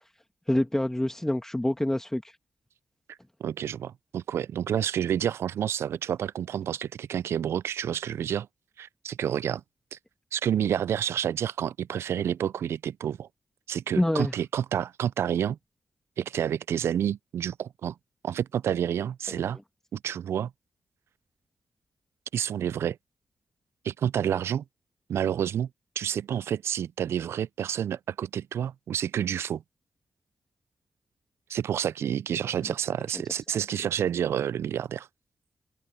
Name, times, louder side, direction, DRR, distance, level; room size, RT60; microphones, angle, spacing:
voice 1, 0.5-2.3 14.0-14.3, left 1 dB, 10° left, 1.5 m, -26 dB
voice 2, 3.4-8.5 8.8-9.6 9.9-10.0 10.3-13.3 13.7-15.6 16.2-18.0 18.2-19.6 19.9-20.5 22.3-23.0 23.8-24.6 25.1-25.7 26.0-29.6 31.5-35.1, right 9 dB, 75° right, 0.3 m, -29 dB
open air
supercardioid pair, 45°, 4 cm